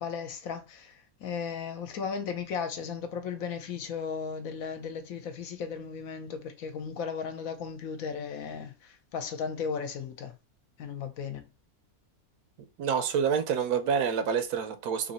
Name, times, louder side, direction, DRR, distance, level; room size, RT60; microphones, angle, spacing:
voice 1, 0.0-10.3 10.8-11.4, left 6 dB, 70° left, 1.1 m, -36 dB
voice 2, 12.8-15.1, right 7 dB, 85° right, 1.2 m, -27 dB
3.0 x 2.8 x 4.1 m
omnidirectional pair, 1.6 m